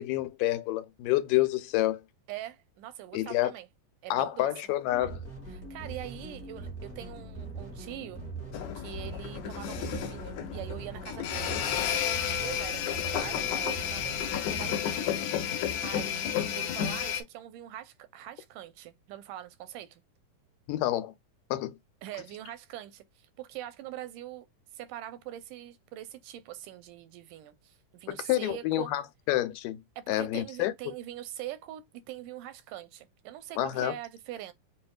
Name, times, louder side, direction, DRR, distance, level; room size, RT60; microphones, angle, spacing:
voice 1, 0.0-2.0 3.1-3.5 4.1-5.2 20.7-21.1 21.5-21.7 28.1-29.8 30.1-30.7 33.6-33.9, left 15 dB, 90° left, 2.3 m, -28 dB
voice 2, 2.3-3.7 4.0-4.5 5.5-8.2 8.8-11.6 11.9-15.1 15.4-20.0 22.0-24.5 24.7-28.9 30.0-34.5, right 13 dB, 85° right, 2.2 m, -43 dB
sound 1, 4.9-14.8, right 3 dB, 45° left, 0.9 m, -42 dB
sound 2, 8.5-17.2, left 9 dB, 75° left, 1.9 m, -32 dB
6.1 x 2.4 x 2.3 m
omnidirectional pair, 3.7 m